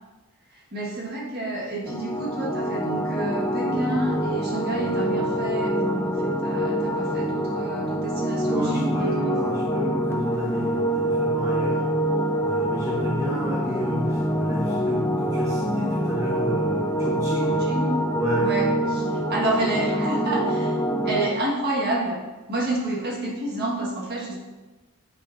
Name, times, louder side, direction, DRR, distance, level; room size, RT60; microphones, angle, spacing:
voice 1, 0.5-9.5 17.4-18.0 18.4-20.8 21.0-22.2 22.5-24.4, right 1 dB, 50° right, -3 dB, 1.5 m, -29 dB
sound 1, 1.9-21.3, right 1 dB, 10° left, 0.5 m, -25 dB
voice 2, 8.4-11.9 12.4-17.6 18.1-18.5, equal, 15° right, -5 dB, 0.9 m, -31 dB
8.3 x 6.2 x 2.6 m, 1.2 s
head